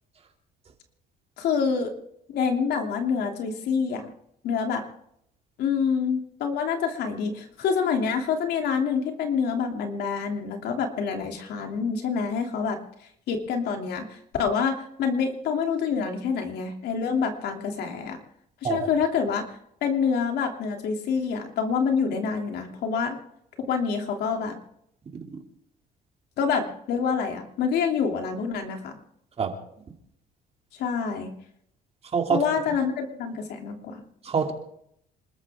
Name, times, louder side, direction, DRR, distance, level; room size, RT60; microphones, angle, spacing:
voice 1, 1.4-1.9 2.3-4.0 4.4-4.8 5.6-12.8 13.3-18.2 18.7-19.4 19.8-23.2 23.6-24.5 26.4-28.9 30.8-31.3 32.3-34.0, left 6 dB, 75° left, 3 dB, 3.0 m, -27 dB
voice 2, 32.1-32.8 34.2-34.5, right 5 dB, 35° right, 3 dB, 2.8 m, -26 dB
27.0 x 14.0 x 3.7 m, 0.73 s
cardioid pair, 110°, 17 cm